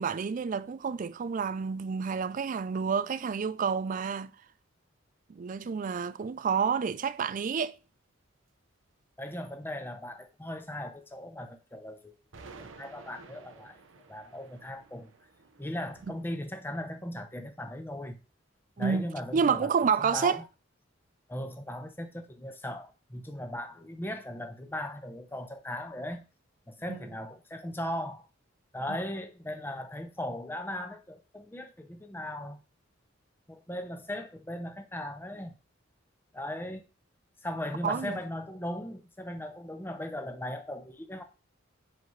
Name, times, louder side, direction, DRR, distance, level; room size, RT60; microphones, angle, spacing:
voice 1, 0.0-4.3 5.3-7.7 18.8-19.0 19.3-20.4 26.9-27.0 28.9-29.0 37.8-38.2, right 6 dB, 40° right, 0.3 m, -29 dB
voice 2, 9.2-12.1 12.6-13.8 14.1-15.1 15.6-18.2 18.8-20.4 21.3-26.2 26.7-28.2 28.7-32.6 33.5-35.5 36.3-36.8 37.4-41.2, left 1 dB, 10° left, 0.8 m, -38 dB
sound 1, 12.3-16.3, right 4 dB, 70° right, 0.8 m, -52 dB
10.0 x 4.1 x 3.2 m
head